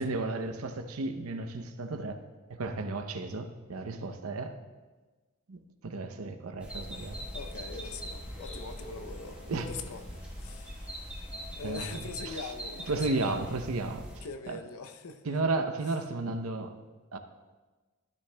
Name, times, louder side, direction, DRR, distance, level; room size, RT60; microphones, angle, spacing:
voice 1, 0.0-2.2 2.5-4.6 5.5-5.6 5.8-7.2 9.5-9.7 11.6-12.4 12.9-14.6 15.3-16.8 17.1-17.2, right 3 dB, 75° right, 8 dB, 0.7 m, -33 dB
sound 1, 6.6-14.2, equal, 5° right, 1.2 m, -43 dB
sound 2, 6.8-12.0, left 1 dB, 30° left, 1.2 m, -47 dB
voice 2, 7.3-11.2 11.6-13.5 14.2-15.4, left 4 dB, 80° left, 8 dB, 0.6 m, -43 dB
12.5 x 10.5 x 2.2 m, 1.3 s
head